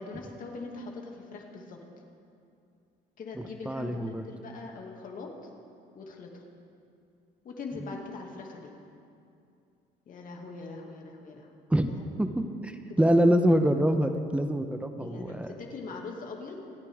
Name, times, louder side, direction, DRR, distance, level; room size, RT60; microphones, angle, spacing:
voice 1, 0.0-1.8 3.2-5.3 5.9-6.5 7.4-8.7 10.1-11.5 11.9-12.0 12.9-13.1 15.0-16.6, left 3 dB, 55° left, 0 dB, 2.3 m, -42 dB
voice 2, 3.4-4.3 11.7-11.9 12.2-15.5, equal, 5° right, 7 dB, 0.9 m, -25 dB
27.5 x 9.6 x 3.6 m, 2.5 s
cardioid pair, 110°, 17 cm